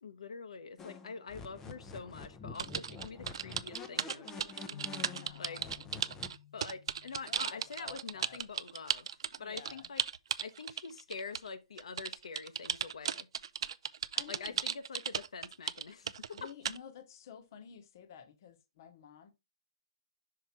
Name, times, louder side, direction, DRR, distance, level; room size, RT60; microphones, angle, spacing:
voice 1, 0.0-4.8 5.3-5.6 6.5-10.0 10.4-13.3 14.3-16.5, left 5 dB, 80° left, 0.9 m, -45 dB
sound 1, 0.8-6.3, left 4 dB, 10° left, 0.5 m, -47 dB
sound 2, 2.5-11.5 11.8-16.8, right 8 dB, 55° right, 0.4 m, -35 dB
sound 3, 4.7-8.2, left 11 dB, 55° left, 0.7 m, -55 dB
voice 2, 5.2-5.9 7.3-8.4 9.4-9.9 14.1-14.6 16.4-19.3, left 7 dB, 35° left, 1.0 m, -52 dB
5.9 x 4.8 x 4.2 m
hypercardioid pair, 175°, 3 cm